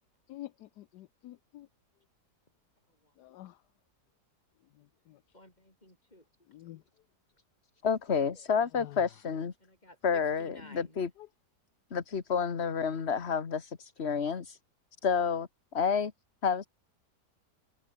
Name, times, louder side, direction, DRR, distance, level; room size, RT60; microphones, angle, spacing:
voice 1, 0.3-1.7 3.2-3.6 5.1-5.2 6.5-6.8 8.8-9.0, left 14 dB, 80° left, 1.2 m, -47 dB
voice 2, 5.3-6.3 8.3-8.5 9.6-11.1, left 1 dB, 25° left, 8.1 m, -55 dB
voice 3, 7.8-9.5 10.0-11.1 11.9-14.6 15.0-15.5 15.7-16.1 16.4-16.7, left 6 dB, 40° left, 1.6 m, -29 dB
omnidirectional pair, 1.8 m